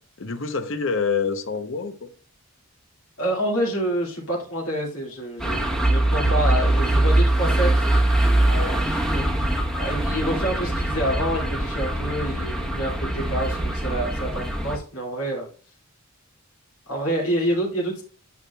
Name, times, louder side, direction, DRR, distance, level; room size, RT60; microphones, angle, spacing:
voice 1, 0.2-2.1 8.5-8.8, left 5 dB, 60° left, 0.7 m, -27 dB
voice 2, 3.2-7.7 8.4-9.4 9.8-15.5 16.9-18.0, right 1 dB, 80° left, 2.1 m, -27 dB
sound 1, 5.4-14.8, right 1 dB, 5° left, 0.9 m, -22 dB
9.4 x 6.2 x 2.3 m
head